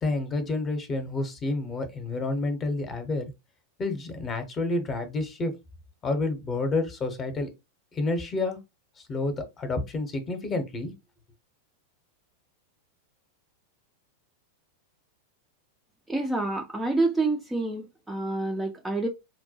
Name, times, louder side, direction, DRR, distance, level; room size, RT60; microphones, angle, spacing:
voice 1, 0.0-3.3 3.8-5.5 6.0-7.5 7.9-8.6 9.1-10.9, left 2 dB, 25° left, 0.8 m, -29 dB
voice 2, 16.1-19.1, right 2 dB, 5° right, 0.4 m, -27 dB
4.5 x 2.2 x 2.8 m
figure-of-eight pair, 90°, 0 cm